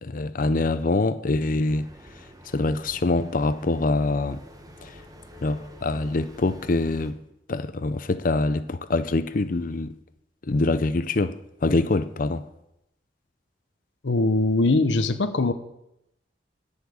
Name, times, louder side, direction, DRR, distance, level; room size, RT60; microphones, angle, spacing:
voice 1, 0.0-1.9 2.5-4.4 4.8-4.9 5.4-7.2 7.5-9.9 10.5-12.4, left 2 dB, 50° left, 0.6 m, -24 dB
sound 1, 1.7-7.1, equal, 20° right, 1.2 m, -47 dB
voice 2, 14.0-15.5, left 2 dB, 80° left, 0.8 m, -21 dB
10.5 x 7.1 x 9.5 m
head